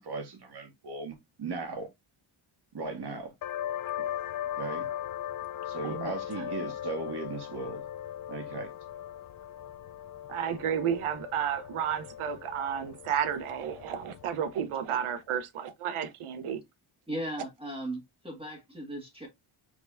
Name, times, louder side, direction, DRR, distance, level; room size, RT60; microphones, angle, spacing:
voice 1, 0.0-1.9 2.7-3.3 4.6-4.9 5.6-7.8 8.3-8.7, right 3 dB, 50° right, 2.0 m, -37 dB
sound 1, 3.4-14.7, left 11 dB, 45° left, 0.4 m, -39 dB
voice 2, 5.8-6.2 10.3-16.6, right 8 dB, 80° right, 0.9 m, -32 dB
voice 3, 17.1-19.3, right 1 dB, 10° right, 1.6 m, -37 dB
4.7 x 4.0 x 2.5 m
cardioid pair, 105°, 50 cm